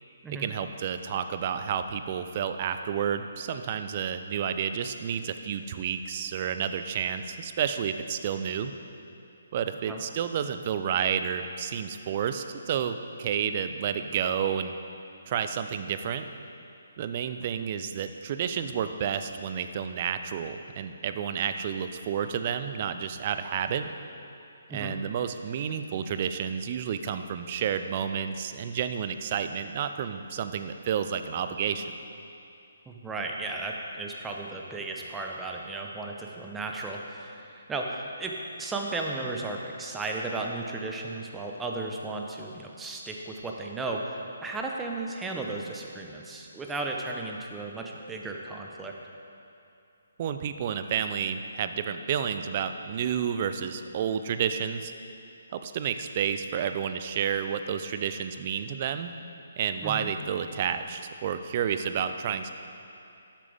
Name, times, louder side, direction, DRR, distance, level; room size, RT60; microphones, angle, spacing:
voice 1, 0.3-8.7 9.5-14.7 15.3-16.2 17.0-23.9 24.7-31.9 50.2-54.9 55.5-59.1 59.6-62.5, right 8 dB, 40° right, 9 dB, 0.5 m, -30 dB
voice 2, 32.9-48.9 59.8-60.1, right 2 dB, 10° right, 0 dB, 0.8 m, -35 dB
12.5 x 7.3 x 3.5 m, 2.7 s
figure-of-eight pair, 140°, 0 cm